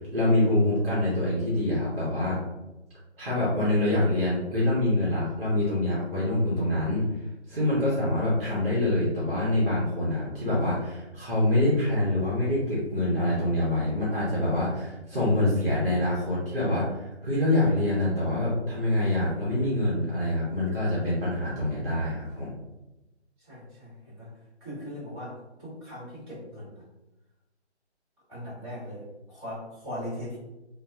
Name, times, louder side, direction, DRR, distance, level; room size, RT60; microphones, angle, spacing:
voice 1, 0.1-2.4 3.2-7.1 7.5-22.5, left 1 dB, 55° right, -7 dB, 1.0 m, -25 dB
voice 2, 23.4-24.3 24.6-26.8 28.3-30.4, equal, 25° right, -10 dB, 1.4 m, -39 dB
2.6 x 2.2 x 2.3 m, 1.0 s
figure-of-eight pair, 160°, 35 cm